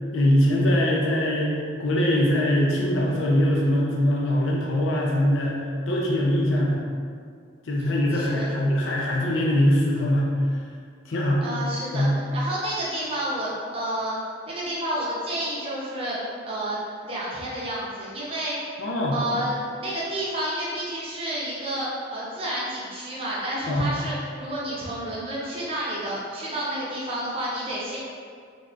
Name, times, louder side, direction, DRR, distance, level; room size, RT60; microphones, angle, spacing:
voice 1, 0.1-6.8 7.7-10.3 11.1-11.4 11.9-12.1 18.8-19.2 23.7-24.0, left 1 dB, 80° left, -3 dB, 0.5 m, -22 dB
voice 2, 8.1-8.5 11.4-16.8 17.0-18.7 19.1-28.0, right 1 dB, 30° right, -7 dB, 0.7 m, -30 dB
3.6 x 3.3 x 2.5 m, 2.1 s
head